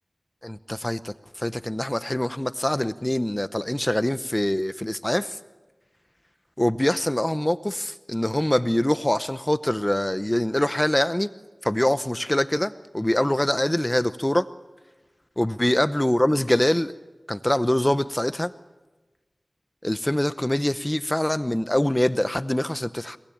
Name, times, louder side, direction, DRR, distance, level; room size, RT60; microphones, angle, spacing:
voice 1, 0.4-5.4 6.6-11.3 11.6-14.5 15.4-16.9 17.3-18.5 19.8-23.2, left 1 dB, 15° left, 11 dB, 0.7 m, -24 dB
30.0 x 19.0 x 8.7 m, 1.2 s
wide cardioid pair, 65°, 0 cm